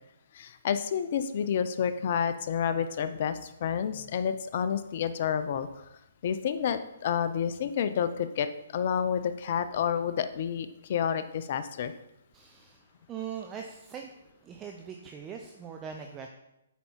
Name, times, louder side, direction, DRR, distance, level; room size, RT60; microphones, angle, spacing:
voice 1, 0.3-5.7 6.2-11.9, left 8 dB, 50° left, 12 dB, 0.6 m, -29 dB
voice 2, 12.3-12.8 13.1-14.1 14.4-16.3, right 7 dB, 20° right, 3 dB, 0.6 m, -41 dB
8.2 x 5.5 x 4.6 m, 0.90 s
hypercardioid pair, 140°, 0 cm